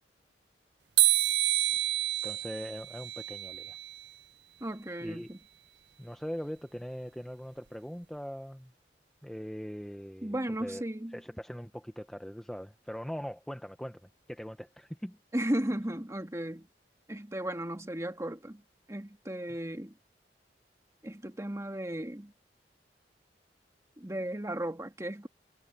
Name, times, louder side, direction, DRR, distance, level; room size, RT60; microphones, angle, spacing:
sound 1, 1.0-4.1, right 14 dB, 75° right, 0.6 m, -28 dB
voice 1, 2.2-3.8 5.0-5.3 6.0-8.7 9.2-10.8 11.1-14.0 14.3-15.2, equal, 5° left, 0.8 m, -41 dB
voice 2, 4.6-5.4 10.2-11.2 15.3-16.7 17.1-18.6 18.9-20.0 21.0-22.3 24.0-25.3, right 1 dB, 15° right, 2.0 m, -35 dB
head